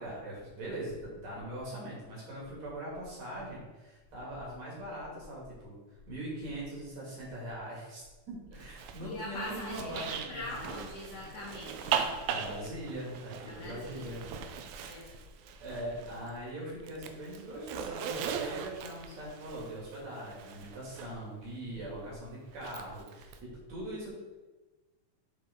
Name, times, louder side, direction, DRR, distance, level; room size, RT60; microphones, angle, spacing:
voice 1, 0.0-5.8 6.1-10.5 11.1-11.4 12.3-14.2 14.8-15.2 15.6-24.1, right 1 dB, 55° right, -6 dB, 3.3 m, -41 dB
Zipper (clothing), 8.6-16.4 16.7-21.1 22.5-23.4, right 7 dB, 80° right, 1.8 m, -39 dB
voice 2, 9.0-12.0 13.5-14.3 14.8-15.1 21.7-22.0, left 2 dB, 65° left, -4 dB, 1.8 m, -42 dB
8.7 x 4.3 x 3.6 m, 1.2 s
omnidirectional pair, 3.7 m